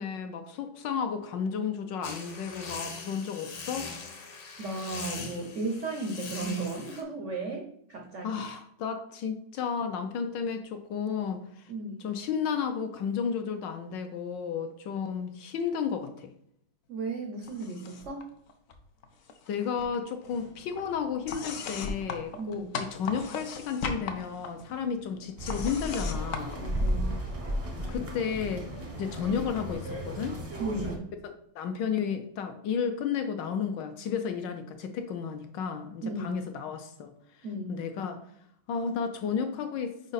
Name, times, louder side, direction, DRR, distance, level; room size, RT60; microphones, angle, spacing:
voice 1, 0.0-3.9 8.2-11.7 12.0-16.3 19.5-26.6 27.9-28.7 29.0-30.4 31.5-38.2 38.7-40.1, left 7 dB, 75° left, 6 dB, 1.1 m, -33 dB
sound 1, 2.0-7.0, left 4 dB, 55° left, 1.2 m, -41 dB
voice 2, 4.6-8.3 11.7-12.1 16.9-18.2 22.4-22.7 26.6-27.2 30.6-31.1 36.0-36.4 37.4-37.8, right 2 dB, 80° right, 1 dB, 0.6 m, -35 dB
sound 2, 17.4-18.2 18.5-19.5 19.8-27.3, left 5 dB, 90° left, 0.7 m, -39 dB
sound 3, 25.4-31.0, right 1 dB, 40° right, 0.5 m, -34 dB
5.1 x 4.9 x 4.0 m, 0.71 s
omnidirectional pair, 2.3 m